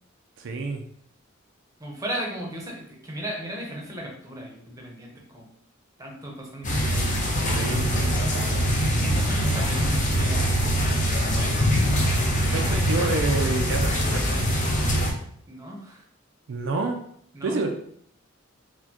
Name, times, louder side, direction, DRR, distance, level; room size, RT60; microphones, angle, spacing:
voice 1, 0.4-0.8 7.5-7.9 12.5-14.5 16.5-17.0 17.4-17.7, right 3 dB, 65° right, 2 dB, 0.4 m, -28 dB
voice 2, 1.8-5.5 6.0-7.2 8.8-10.4 10.9-11.6 12.6-12.8 15.5-16.0 17.3-17.7, right 1 dB, 15° right, 0 dB, 0.7 m, -36 dB
sound 1, 6.6-15.1, equal, 40° left, 0.7 m, -23 dB
4.2 x 2.2 x 2.9 m, 0.66 s
head